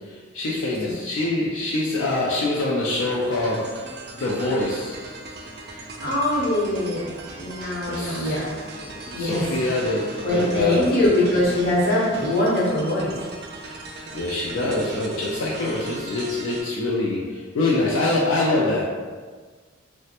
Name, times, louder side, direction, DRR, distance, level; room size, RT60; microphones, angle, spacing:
voice 1, 0.3-3.9 4.1-5.0 7.9-8.4 8.8-10.9 14.1-18.8, left 2 dB, 75° left, -5 dB, 0.4 m, -25 dB
sound 1, 2.9-16.6, right 2 dB, 50° right, 0.3 m, -39 dB
voice 2, 5.7-8.5 9.1-9.5 10.2-13.1, left 1 dB, 45° left, -6 dB, 0.8 m, -23 dB
3.2 x 2.1 x 2.8 m, 1.5 s
head